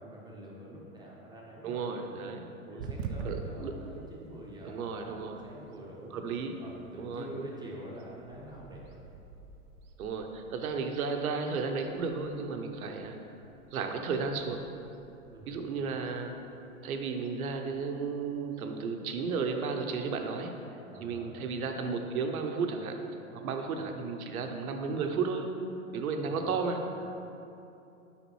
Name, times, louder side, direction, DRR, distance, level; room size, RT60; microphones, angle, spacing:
voice 1, 0.0-1.8 2.6-6.2 6.6-9.0 15.3-15.6 20.9-21.4 26.2-26.6, right 1 dB, 10° right, -4 dB, 0.8 m, -46 dB
voice 2, 1.6-2.5 3.2-4.1 4.6-5.4 6.1-6.6 7.0-7.3 10.0-13.2 13.7-14.6 15.5-16.5 16.8-20.5 21.0-23.0 23.3-25.5 25.9-27.2, right 5 dB, 80° right, 4 dB, 0.8 m, -33 dB
sound 1, 2.8-20.7, right 4 dB, 45° right, 0.5 m, -48 dB
7.1 x 5.1 x 3.0 m, 2.8 s
hypercardioid pair, 110°, 43 cm